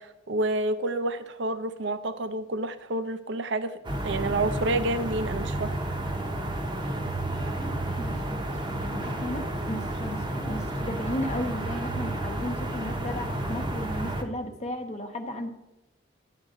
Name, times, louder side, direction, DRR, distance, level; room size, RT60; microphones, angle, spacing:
voice 1, 0.0-5.7, right 2 dB, 65° right, 11 dB, 0.6 m, -29 dB
sound 1, 3.8-14.2, right 1 dB, 25° right, 0.8 m, -31 dB
voice 2, 7.6-15.5, left 1 dB, 35° left, 6 dB, 0.9 m, -35 dB
11.0 x 7.5 x 3.8 m, 0.97 s
head